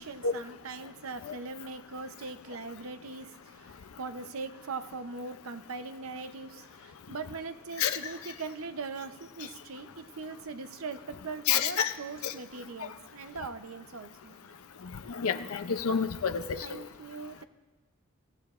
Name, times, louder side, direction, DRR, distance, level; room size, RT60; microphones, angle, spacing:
voice 1, 0.0-14.4 16.6-17.4, right 4 dB, 70° right, 9 dB, 0.7 m, -41 dB
voice 2, 11.5-11.9 12.2-12.3 15.2-16.7, left 7 dB, 75° left, 9 dB, 0.6 m, -28 dB
23.5 x 15.5 x 2.5 m, 1.2 s
head